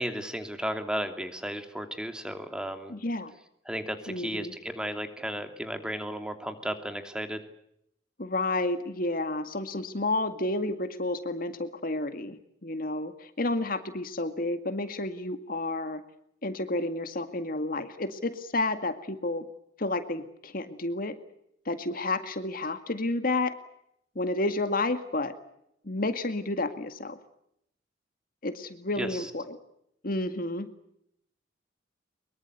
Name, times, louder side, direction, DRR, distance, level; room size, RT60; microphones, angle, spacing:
voice 1, 0.0-2.9 3.7-7.4 29.0-29.1, equal, 5° right, 7 dB, 2.9 m, -34 dB
voice 2, 2.9-3.3 4.1-4.5 8.2-16.0 16.4-19.4 19.8-21.2 21.7-23.5 24.2-25.3 25.8-27.2 28.4-29.6 30.0-30.7, left 2 dB, 50° left, 9 dB, 2.1 m, -31 dB
24.0 x 23.0 x 8.3 m, 0.75 s
head